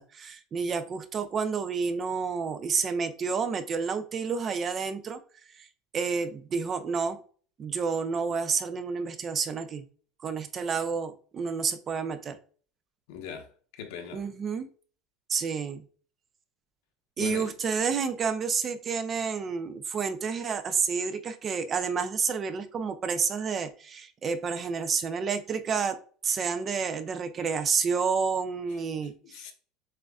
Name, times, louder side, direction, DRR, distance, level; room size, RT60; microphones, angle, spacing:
voice 1, 0.0-5.2 5.5-5.7 5.9-7.2 7.6-9.8 10.2-12.4 14.1-14.7 15.3-15.8 17.2-26.0 26.2-29.5, right 5 dB, 25° right, 0.4 m, -30 dB
voice 2, 13.1-13.5 13.8-14.3 17.2-17.5 29.2-29.5, left 7 dB, 75° left, 1.0 m, -39 dB
7.4 x 2.5 x 2.3 m
cardioid pair, 160°, 0 cm